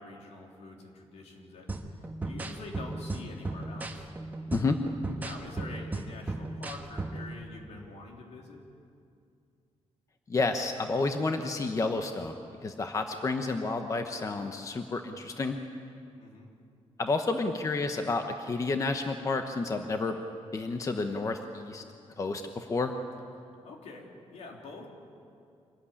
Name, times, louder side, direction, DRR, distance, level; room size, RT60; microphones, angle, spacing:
voice 1, 0.0-4.1 5.2-8.6 16.2-16.5 23.6-24.9, left 3 dB, 75° left, 1 dB, 3.5 m, -46 dB
sound 1, 1.7-7.3, right 2 dB, 15° right, 1.5 m, -36 dB
voice 2, 10.3-12.4 12.6-15.6 17.0-20.2 20.5-21.8 22.2-22.9, left 3 dB, 30° left, 6 dB, 1.0 m, -30 dB
25.5 x 14.5 x 9.9 m, 2.5 s
wide cardioid pair, 150°, 11 cm